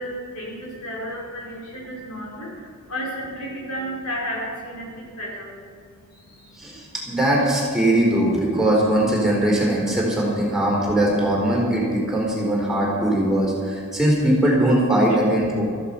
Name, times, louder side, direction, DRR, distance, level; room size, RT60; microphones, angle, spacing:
voice 1, 0.0-6.9, equal, 75° left, -3 dB, 5.1 m, -33 dB
voice 2, 6.6-15.6, right 1 dB, ahead, -4 dB, 4.2 m, -20 dB
15.0 x 14.0 x 5.8 m, 2.2 s
head